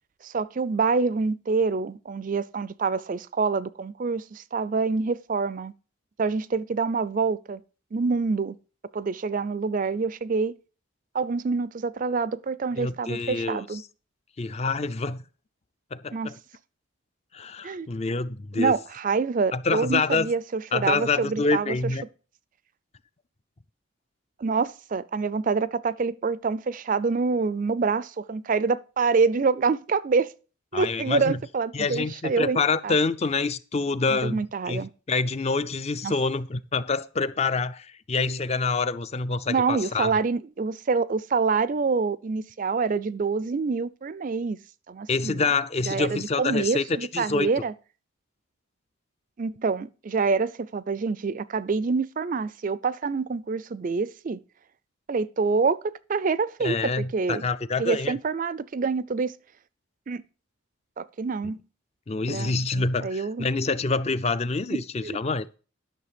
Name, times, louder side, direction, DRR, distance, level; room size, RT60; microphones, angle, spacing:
voice 1, 0.2-5.7 6.2-7.6 7.9-8.6 8.9-10.5 11.1-13.8 16.1-16.3 17.6-17.9 18.6-21.8 24.4-30.3 30.7-32.9 34.1-34.9 36.0-36.1 39.5-44.6 44.9-45.5 45.9-47.7 49.4-54.4 55.1-57.4 57.8-59.3 60.1-60.2 61.0-61.6 62.3-63.5 64.7-65.2, right 4 dB, 40° right, 0.4 m, -26 dB
voice 2, 12.8-13.6 14.4-15.2 15.9-16.3 17.3-18.7 19.5-20.3 20.7-22.0 30.7-31.4 31.7-34.4 34.7-40.1 45.1-46.8 47.1-47.5 56.6-58.2 61.4-61.6 62.1-65.5, left 4 dB, 30° left, 0.4 m, -26 dB
11.5 x 6.5 x 5.1 m
head